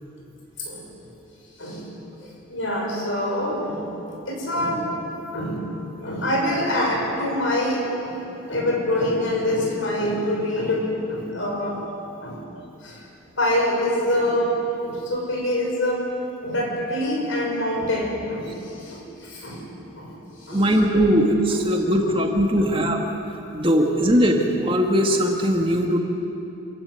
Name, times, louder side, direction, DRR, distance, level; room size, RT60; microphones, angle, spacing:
voice 1, 2.5-3.9 4.3-4.9 5.3-5.7 6.0-8.2 8.5-11.8 12.2-12.4 12.8-12.9 13.4-14.6 14.8-16.0 16.4-18.5 18.8-19.6 20.0-20.1 20.5-20.6 22.6-22.7, left 1 dB, 70° left, -1 dB, 5.9 m, -25 dB
voice 2, 20.5-23.0 23.5-26.0, equal, 25° right, 2 dB, 1.8 m, -20 dB
27.5 x 15.0 x 9.3 m, 2.8 s
head